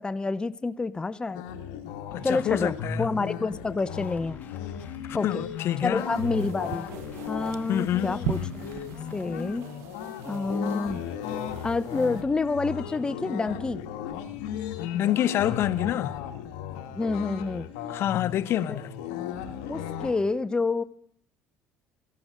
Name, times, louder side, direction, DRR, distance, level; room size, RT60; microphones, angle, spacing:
voice 1, 0.0-1.4 2.2-4.4 5.1-5.4 5.8-6.9 7.3-8.4 9.1-9.7 10.2-11.0 11.6-13.8 17.0-17.7 18.7-18.8 19.7-20.8, left 3 dB, 20° left, 0.5 m, -28 dB
sound 1, 1.3-20.1, left 8 dB, 85° left, 1.3 m, -36 dB
voice 2, 2.1-3.1 5.1-6.0 7.7-8.1 14.9-16.2 17.9-18.9, left 12 dB, 60° left, 0.6 m, -27 dB
sound 2, 3.8-9.6, left 6 dB, 40° left, 1.3 m, -52 dB
sound 3, 6.0-12.2, right 11 dB, 75° right, 0.6 m, -40 dB
14.5 x 11.5 x 6.3 m
supercardioid pair, 85°, 5 cm